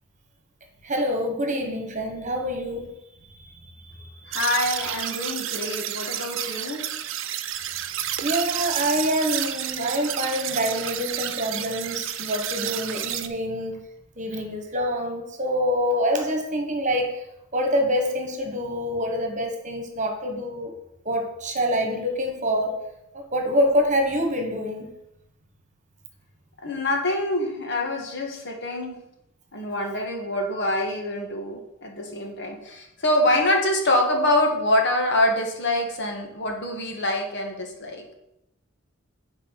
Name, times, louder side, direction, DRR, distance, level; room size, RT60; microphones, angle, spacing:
voice 1, 0.8-2.9 4.0-4.4 7.5-13.9 14.2-17.2 17.5-20.7 21.0-22.7 23.1-24.9, equal, 40° right, 3 dB, 1.5 m, -26 dB
voice 2, 4.3-6.8 26.6-29.0 29.5-38.0, left 1 dB, 60° left, 2 dB, 1.7 m, -25 dB
sound 1, 4.3-13.3, right 11 dB, 65° right, 0.6 m, -30 dB
8.6 x 4.8 x 5.9 m, 0.83 s
head